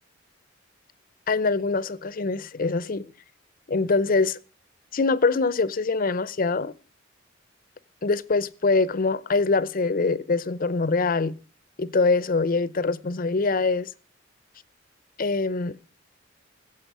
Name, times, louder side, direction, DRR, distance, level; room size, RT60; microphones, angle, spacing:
voice 1, 1.3-3.1 3.7-4.4 4.9-6.7 8.0-11.3 11.8-13.9 15.2-15.8, left 3 dB, 45° left, 0.6 m, -24 dB
15.5 x 7.6 x 6.1 m
head